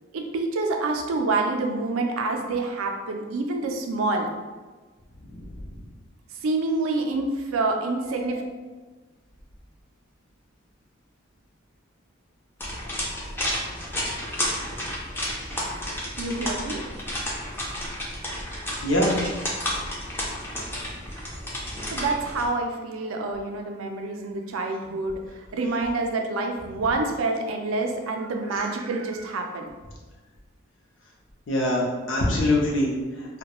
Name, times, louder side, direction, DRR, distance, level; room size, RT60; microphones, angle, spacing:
voice 1, 0.1-4.3 6.4-8.4 16.0-16.9 21.9-25.2 25.5-29.7, right 3 dB, 85° right, 3 dB, 0.4 m, -27 dB
voice 2, 5.3-5.6 18.8-19.2 31.5-33.4, left 1 dB, 65° left, -2 dB, 0.6 m, -24 dB
sound 1, 12.6-22.5, left 1 dB, 10° left, 0.3 m, -31 dB
2.3 x 2.1 x 2.9 m, 1.3 s
head